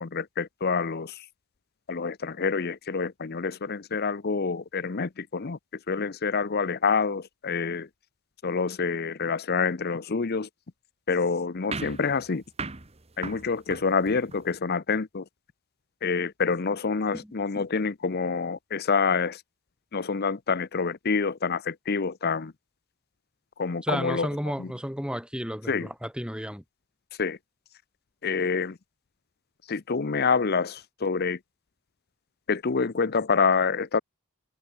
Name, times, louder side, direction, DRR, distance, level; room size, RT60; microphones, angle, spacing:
voice 1, 0.0-1.2 1.9-5.6 5.9-7.9 8.4-10.5 11.1-12.4 13.2-15.2 16.0-19.4 19.9-22.5 23.6-24.3 24.6-24.7 25.7-25.9 27.2-27.4 28.2-28.8 29.7-31.4 32.5-34.0, left 5 dB, 45° left, 0.7 m, -27 dB
sound 1, 11.7-14.6, right 4 dB, 30° right, 1.2 m, -38 dB
voice 2, 23.8-26.6, equal, 5° right, 4.2 m, -32 dB
head